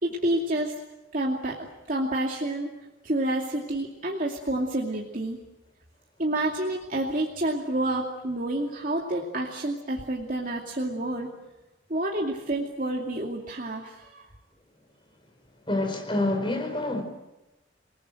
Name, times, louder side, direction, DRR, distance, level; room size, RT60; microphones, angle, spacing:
voice 1, 0.0-0.8 1.1-2.7 3.0-5.4 6.2-11.3 11.9-14.2, right 1 dB, 45° right, -1 dB, 2.6 m, -29 dB
voice 2, 15.7-17.0, left 2 dB, 25° left, 5 dB, 4.4 m, -27 dB
29.0 x 19.0 x 9.1 m, 1.0 s
head